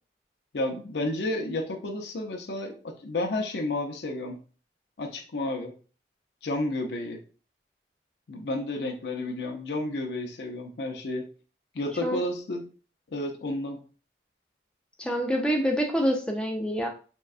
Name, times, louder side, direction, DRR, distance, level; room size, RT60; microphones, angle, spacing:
voice 1, 0.5-4.4 5.0-5.7 6.4-7.2 8.3-11.3 11.7-12.6 13.1-13.8, left 1 dB, 75° left, 2 dB, 0.5 m, -31 dB
voice 2, 15.0-16.9, equal, 5° left, 1 dB, 0.3 m, -26 dB
3.5 x 2.2 x 2.4 m, 0.38 s
head